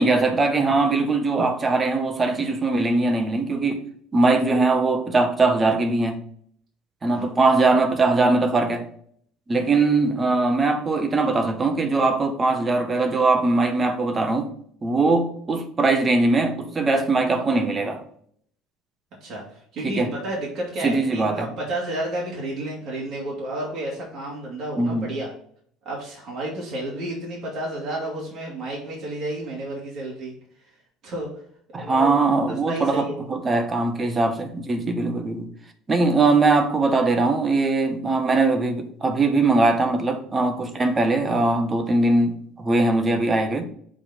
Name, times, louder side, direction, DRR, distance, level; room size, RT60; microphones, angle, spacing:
voice 1, 0.0-3.8 4.1-6.2 7.0-8.9 9.5-14.5 14.8-18.0 19.8-20.1 20.8-21.5 24.8-25.1 31.7-35.5 35.9-43.6, right 3 dB, 20° right, 0.8 m, -21 dB
voice 2, 19.2-25.3 25.8-30.3 31.0-31.3 31.7-32.1 32.7-33.2 33.6-33.7, right 1 dB, 40° right, 2.5 m, -31 dB
7.2 x 4.2 x 4.1 m
cardioid pair, 160°, 0 cm